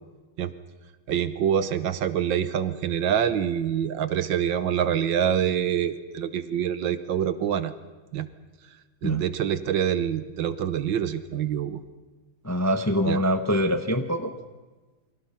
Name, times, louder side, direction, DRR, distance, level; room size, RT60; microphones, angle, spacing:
voice 1, 1.1-7.7 8.1-8.3 9.0-11.8 13.0-13.2, right 9 dB, 65° right, 13 dB, 1.7 m, -26 dB
voice 2, 12.4-14.3, equal, 10° left, 7 dB, 0.8 m, -24 dB
28.5 x 23.5 x 5.8 m, 1.3 s
omnidirectional pair, 2.2 m